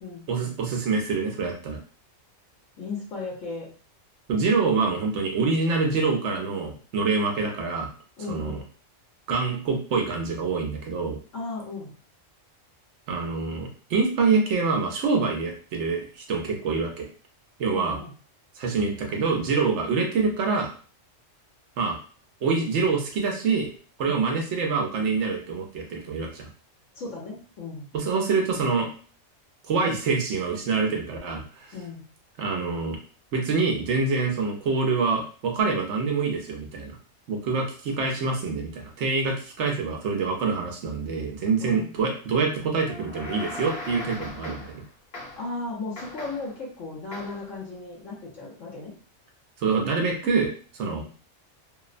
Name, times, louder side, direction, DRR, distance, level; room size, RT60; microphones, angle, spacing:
voice 1, 0.3-1.8 4.3-7.9 8.3-8.6 9.3-11.2 13.1-17.1 17.6-18.0 18.6-20.7 21.8-22.0 22.4-23.7 24.0-26.5 27.9-28.9 29.7-31.7 32.4-33.0 33.3-37.0 37.3-44.8 49.6-51.0, right 4 dB, 70° right, 2 dB, 0.9 m, -26 dB
voice 2, 2.8-3.7 8.2-8.6 11.3-11.9 17.7-18.1 24.0-24.3 26.9-27.9 31.7-32.0 41.6-41.9 45.4-48.9 50.9-51.1, left 3 dB, 75° left, -4 dB, 1.1 m, -36 dB
sound 1, 42.9-44.8 45.1-45.6 46.0-46.6 47.1-47.5, left 2 dB, 55° left, 1.0 m, -39 dB
2.8 x 2.0 x 2.4 m, 0.40 s
omnidirectional pair, 1.3 m